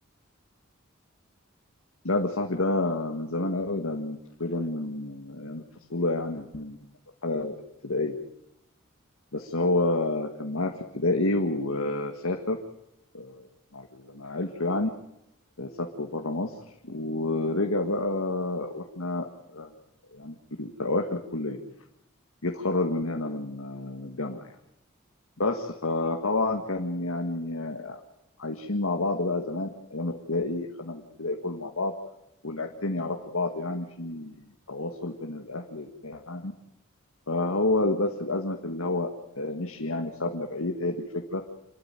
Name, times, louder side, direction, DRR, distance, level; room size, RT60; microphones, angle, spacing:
voice 1, 2.0-5.6 5.9-6.8 7.2-7.6 7.8-8.2 9.3-12.6 13.1-13.4 13.7-14.9 15.6-16.5 16.8-19.7 20.1-21.6 22.4-24.5 25.4-28.0 28.4-31.9 32.4-34.3 34.7-36.5 37.3-39.1 39.4-41.0 41.3-41.4, left 2 dB, 85° left, 3 dB, 1.9 m, -29 dB
27.0 x 13.0 x 9.1 m, 0.85 s
head